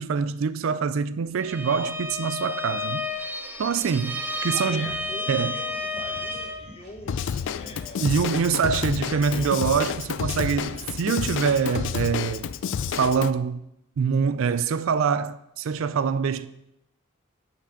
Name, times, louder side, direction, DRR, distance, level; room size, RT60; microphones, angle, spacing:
voice 1, 0.0-3.0 3.6-5.0 5.3-5.5 8.0-12.5 12.9-13.6 14.0-16.5, right 6 dB, 70° right, 0.4 m, -25 dB
Bowed string instrument, 1.4-6.7, left 2 dB, 10° right, 0.7 m, -31 dB
voice 2, 4.5-7.3 7.5-8.1 8.9-9.6, left 2 dB, 30° left, 1.4 m, -43 dB
sound 1, 4.6-12.1, right 1 dB, 50° right, 3.0 m, -48 dB
Drum kit / Drum, 7.1-13.3, left 7 dB, 60° left, 0.3 m, -30 dB
6.0 x 6.0 x 6.4 m
head